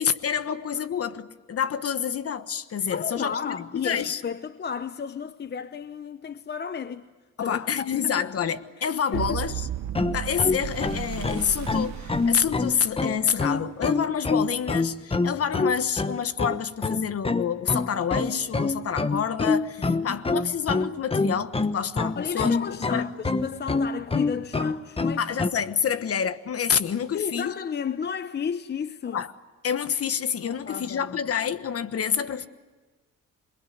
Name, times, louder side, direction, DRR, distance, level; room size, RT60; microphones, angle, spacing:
voice 1, 0.0-4.2 7.4-9.6 10.1-23.0 25.2-27.5 29.1-29.3 29.6-32.5, left 8 dB, 50° left, 1.3 m, -28 dB
voice 2, 2.9-7.1 7.4-8.3 8.8-9.4 19.9-20.2 22.2-25.2 27.1-29.2 30.5-31.2, left 7 dB, 35° left, 0.8 m, -33 dB
sound 1, 9.1-13.3, right 11 dB, 65° right, 1.4 m, -34 dB
sound 2, 10.0-25.5, left 3 dB, 20° left, 1.1 m, -26 dB
27.0 x 21.5 x 9.4 m
cardioid pair, 90°, 30 cm